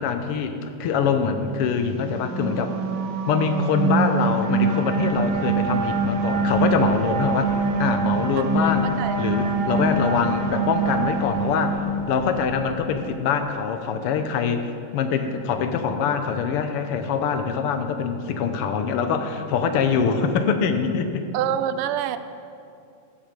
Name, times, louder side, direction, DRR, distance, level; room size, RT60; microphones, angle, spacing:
voice 1, 0.0-2.8 3.3-7.5 7.8-11.8 12.1-21.2, left 6 dB, 90° left, 7 dB, 1.8 m, -24 dB
sound 1, 2.0-12.5, right 4 dB, 65° right, 1.5 m, -24 dB
sound 2, 5.0-13.0, left 3 dB, 40° left, 1.1 m, -37 dB
voice 2, 8.3-8.7 9.0-9.2 9.4-9.7 21.3-22.2, right 10 dB, 85° right, 11 dB, 1.5 m, -27 dB
14.5 x 7.5 x 5.2 m, 2.5 s
omnidirectional pair, 2.4 m